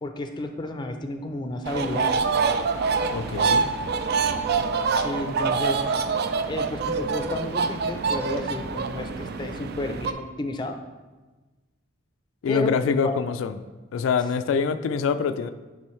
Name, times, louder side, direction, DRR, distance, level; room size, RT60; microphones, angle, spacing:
voice 1, 0.0-2.2 5.0-5.8 6.5-10.8 12.5-13.1, left 2 dB, 25° left, 6 dB, 0.4 m, -32 dB
sound 1, 1.6-10.1, right 5 dB, 55° right, 0.4 m, -25 dB
voice 2, 3.1-3.7 12.4-13.6 13.9-15.5, left 6 dB, 85° left, 10 dB, 0.3 m, -25 dB
9.8 x 3.8 x 3.1 m, 1.2 s
head